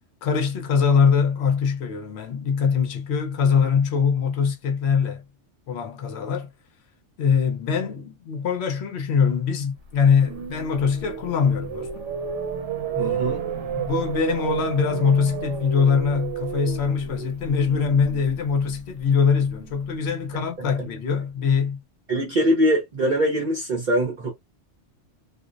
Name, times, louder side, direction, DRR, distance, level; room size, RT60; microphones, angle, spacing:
voice 1, 0.2-5.2 5.7-6.5 7.2-12.1 12.9-21.8, left 6 dB, 65° left, 0.9 m, -23 dB
sound 1, 9.9-20.0, right 8 dB, 75° right, 1.0 m, -32 dB
voice 2, 13.0-13.4 20.3-20.7 22.1-24.3, equal, 50° right, 0.7 m, -23 dB
2.5 x 2.0 x 2.4 m
omnidirectional pair, 1.3 m